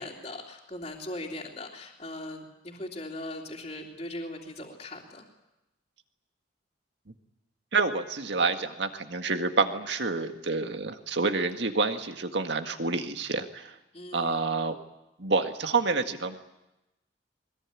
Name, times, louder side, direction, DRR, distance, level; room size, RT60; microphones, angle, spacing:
voice 1, 0.0-5.2 13.9-14.4, left 1 dB, 35° left, -7 dB, 2.9 m, -39 dB
voice 2, 7.7-13.7 14.1-14.8 15.2-16.4, right 4 dB, 70° right, 7 dB, 1.8 m, -28 dB
22.0 x 21.0 x 9.9 m, 0.94 s
head